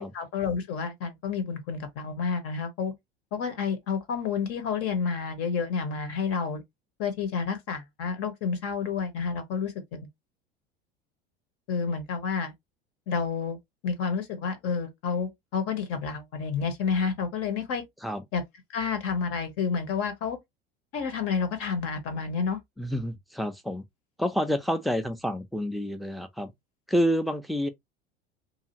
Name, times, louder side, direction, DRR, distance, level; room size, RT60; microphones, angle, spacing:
voice 1, 0.0-2.9 3.3-6.6 7.0-10.1 11.7-12.5 13.1-13.6 13.8-17.8 18.3-18.4 18.7-20.4 20.9-22.6, left 5 dB, 50° left, 1.1 m, -30 dB
voice 2, 22.8-23.8 24.2-26.5 26.9-27.7, equal, ahead, 0.5 m, -28 dB
2.8 x 2.4 x 2.9 m
hypercardioid pair, 80°, 29 cm